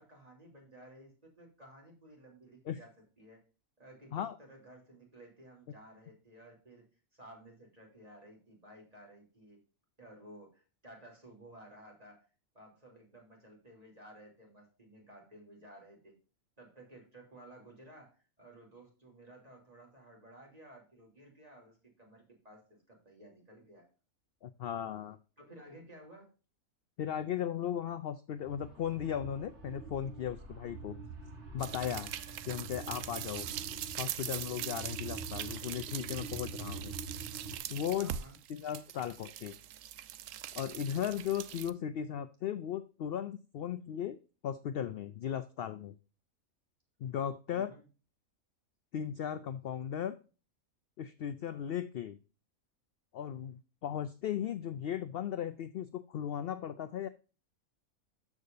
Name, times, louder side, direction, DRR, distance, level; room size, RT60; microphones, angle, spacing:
voice 1, 0.0-3.4 3.8-9.6 10.0-12.2 12.5-16.1 16.6-23.9 25.4-26.3 33.4-33.7 38.0-38.4 47.5-47.9, right 1 dB, 30° right, -1 dB, 3.1 m, -55 dB
voice 2, 24.4-25.2 27.0-31.0 31.5-32.1 32.5-33.5 34.0-36.9 37.7-38.1 38.5-39.6 40.5-45.9 47.0-47.7 48.9-50.2 51.0-52.2 53.1-57.1, left 9 dB, 65° left, 12 dB, 0.6 m, -37 dB
sound 1, 28.4-37.6, right 3 dB, 55° right, 1.8 m, -46 dB
sound 2, 31.6-41.7, right 11 dB, 75° right, 0.9 m, -42 dB
13.0 x 4.9 x 2.6 m, 0.34 s
omnidirectional pair, 1.4 m